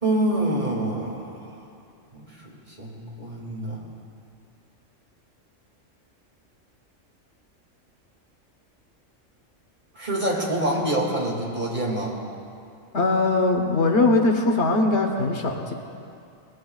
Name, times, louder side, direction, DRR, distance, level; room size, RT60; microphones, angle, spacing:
voice 1, 0.0-1.5 2.1-3.8 9.9-12.2, right 1 dB, 35° right, -3 dB, 2.6 m, -26 dB
voice 2, 12.9-15.7, left 2 dB, 60° left, 3 dB, 1.4 m, -21 dB
22.0 x 20.0 x 2.4 m, 2.5 s
omnidirectional pair, 1.3 m